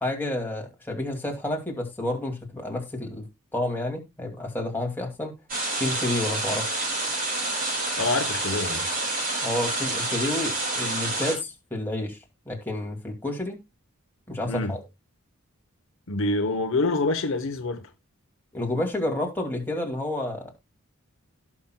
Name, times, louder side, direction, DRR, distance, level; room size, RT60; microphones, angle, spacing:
voice 1, 0.0-3.3 3.5-5.4 5.8-6.7 9.4-12.2 12.5-13.6 14.3-14.8 18.5-20.5, left 1 dB, 10° left, 2.3 m, -30 dB
sound 1, 5.5-11.3, right 2 dB, 40° right, 6.4 m, -28 dB
voice 2, 8.0-8.9 14.5-14.7 16.1-17.9, left 2 dB, 60° left, 1.0 m, -26 dB
17.5 x 6.0 x 2.2 m
head